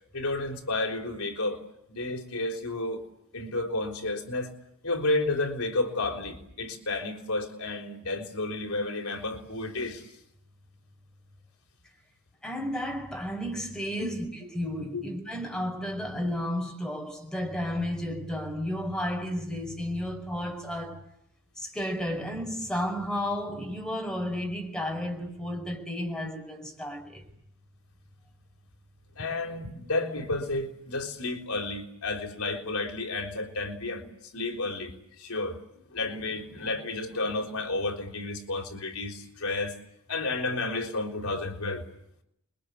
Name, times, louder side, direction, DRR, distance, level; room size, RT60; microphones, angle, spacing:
voice 1, 0.1-1.6 1.9-3.0 3.3-4.5 4.8-10.1 14.0-14.1 14.9-15.0 29.2-34.0 34.3-35.6 35.9-39.8 40.1-41.8, left 2 dB, 85° left, 3.8 m, -31 dB
voice 2, 12.4-21.1 21.6-27.2, equal, 5° left, 5.3 m, -32 dB
29.0 x 22.5 x 8.3 m
head